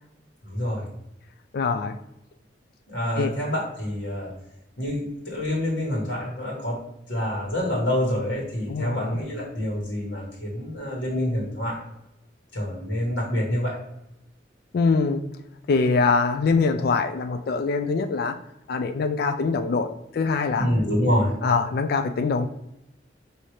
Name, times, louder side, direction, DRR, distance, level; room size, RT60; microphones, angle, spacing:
voice 1, 0.4-0.8 2.9-4.3 4.8-6.8 7.1-11.8 12.5-13.8 20.6-21.3, equal, 85° left, -3 dB, 1.5 m, -27 dB
voice 2, 1.5-1.9 3.2-3.4 8.7-9.2 14.7-15.2 15.7-18.4 18.7-20.7 21.4-22.5, left 4 dB, 55° left, 6 dB, 0.3 m, -23 dB
5.6 x 2.8 x 3.1 m, 0.85 s
head